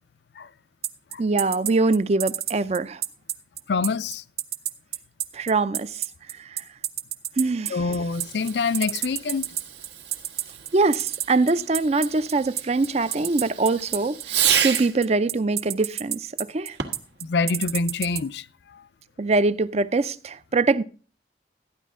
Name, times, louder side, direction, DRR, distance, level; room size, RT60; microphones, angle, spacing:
sound 1, 0.8-18.2, right 11 dB, 60° right, 0.9 m, -28 dB
voice 1, 1.2-3.0 5.3-6.0 6.3-6.6 7.4-7.8 10.7-16.8 19.2-20.8, right 3 dB, 35° right, 0.5 m, -23 dB
voice 2, 3.7-4.2 7.7-9.5 17.2-18.8, left 4 dB, 70° left, 0.5 m, -26 dB
Fireworks, 8.0-15.1 16.7-17.2, right 9 dB, 80° right, 1.6 m, -31 dB
13.5 x 10.0 x 3.7 m
head